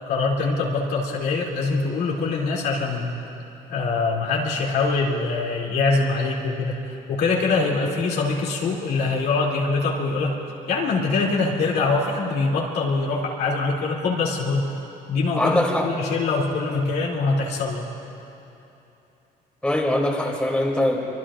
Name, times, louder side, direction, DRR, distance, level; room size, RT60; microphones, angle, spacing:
voice 1, 0.1-3.2 3.7-10.4 10.7-14.7 15.1-17.9, left 3 dB, 70° left, -4 dB, 2.8 m, -23 dB
voice 2, 15.4-15.9 19.6-21.0, left 1 dB, 5° left, -2 dB, 2.7 m, -22 dB
25.0 x 23.0 x 2.5 m, 2.9 s
cardioid pair, 110°, 17 cm